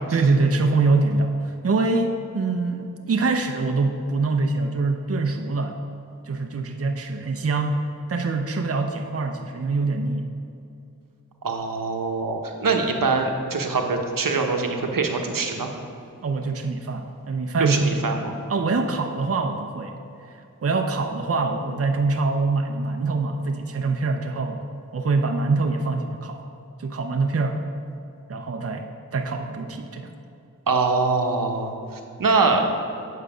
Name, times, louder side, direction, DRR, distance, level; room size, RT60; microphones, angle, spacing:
voice 1, 0.1-5.8 6.2-7.8 8.1-10.3 16.2-18.2 18.5-20.3 20.6-24.6 24.9-26.4 26.8-27.6 28.3-28.9 29.1-30.1, right 3 dB, 45° right, 4 dB, 0.6 m, -24 dB
voice 2, 11.4-15.7 17.6-18.3 30.7-32.7, right 4 dB, 85° right, 3 dB, 1.0 m, -23 dB
9.0 x 6.5 x 5.0 m, 2.6 s
wide cardioid pair, 75°, 33 cm